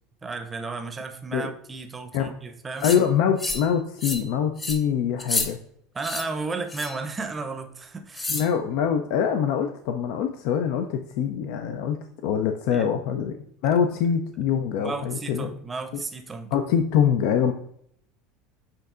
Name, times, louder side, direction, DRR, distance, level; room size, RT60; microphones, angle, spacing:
voice 1, 0.2-2.9 5.9-8.3 12.7-12.9 14.8-16.5, right 4 dB, 20° right, 6 dB, 0.6 m, -33 dB
voice 2, 2.8-5.6 8.3-13.4 13.6-15.5 15.9-16.0 16.5-17.5, left 8 dB, 65° left, 6 dB, 0.3 m, -24 dB
sound 1, 2.8-3.0 3.4-3.7 4.0-4.3 4.6-4.8 5.2-5.5 6.0-6.3 6.7-7.0 8.1-8.5, left 2 dB, 25° left, 0.8 m, -29 dB
7.4 x 2.7 x 2.4 m, 0.67 s
hypercardioid pair, 80°, 0 cm